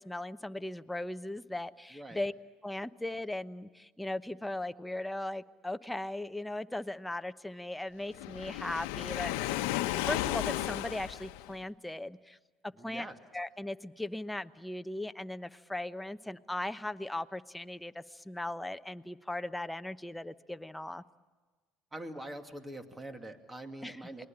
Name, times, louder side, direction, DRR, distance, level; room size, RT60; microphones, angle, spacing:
voice 1, 0.0-2.3 2.6-9.7 10.0-12.4 12.6-13.1 13.3-21.0 23.8-24.2, left 1 dB, 5° left, 11 dB, 0.9 m, -38 dB
Waves surf, 8.1-11.6, left 15 dB, 85° left, 0.9 m, -34 dB
voice 2, 12.8-13.2 21.9-24.3, right 1 dB, 15° right, 6 dB, 2.6 m, -44 dB
28.5 x 21.0 x 8.8 m, 1.4 s
supercardioid pair, 90°, 0 cm